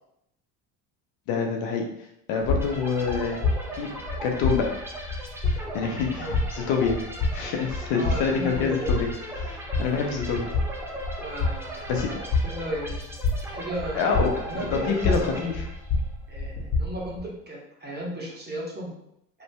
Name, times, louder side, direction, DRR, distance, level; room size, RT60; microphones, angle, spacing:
voice 1, 1.3-1.8 2.3-3.4 3.7-3.9 4.2-4.7 5.7-7.0 7.3-9.1 9.5-10.5 11.9-12.1 13.9-14.3 14.7-15.6, left 5 dB, 65° left, 2 dB, 0.7 m, -26 dB
sound 1, 2.4-17.2, left 3 dB, 40° left, 1.1 m, -29 dB
sound 2, 2.6-16.1, right 1 dB, 5° right, 0.5 m, -39 dB
voice 2, 7.9-8.9 9.7-10.2 11.2-13.0 13.5-14.0 14.3-15.5 16.3-18.9, right 1 dB, 20° right, -4 dB, 1.2 m, -35 dB
3.1 x 2.6 x 2.2 m, 0.76 s
hypercardioid pair, 60°, 45 cm